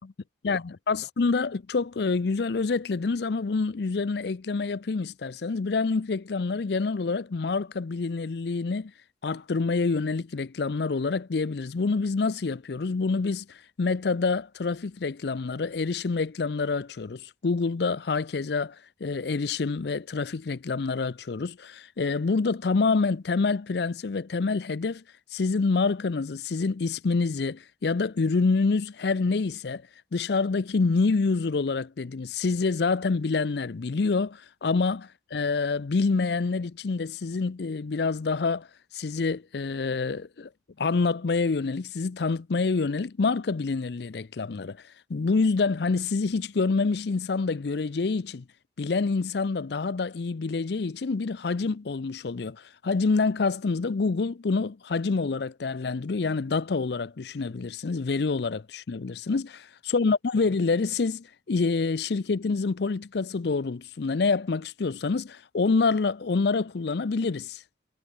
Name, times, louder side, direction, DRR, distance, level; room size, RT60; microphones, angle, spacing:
voice 1, 0.4-8.9 9.2-18.8 19.0-25.0 25.3-29.8 30.1-38.7 38.9-40.5 40.8-44.8 45.1-48.4 48.8-67.6, left 4 dB, 60° left, 0.5 m, -27 dB
head